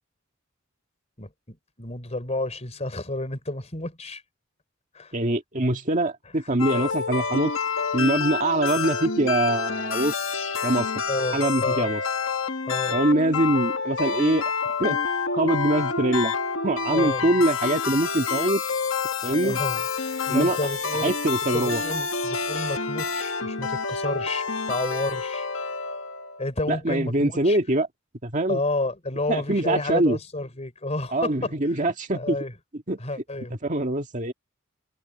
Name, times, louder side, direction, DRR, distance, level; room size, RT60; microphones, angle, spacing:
voice 1, 1.2-4.2 4.9-5.2 11.1-11.9 12.7-13.0 16.9-17.3 19.4-21.1 21.5-25.5 26.4-27.6 28.5-31.5 31.8-32.5 33.0-33.5, left 2 dB, 35° left, 4.2 m, -31 dB
voice 2, 5.1-7.5 7.9-10.3 10.6-10.9 11.3-12.0 12.9-14.5 14.8-15.0 15.3-16.3 16.6-18.6 19.2-19.6 20.3-20.6 21.0-21.8 26.7-27.9 28.2-28.6 29.3-30.2 31.1-32.4 32.9-33.0 33.6-34.3, right 1 dB, 40° right, 2.0 m, -23 dB
sound 1, 6.6-26.5, left 5 dB, 75° left, 1.7 m, -28 dB
head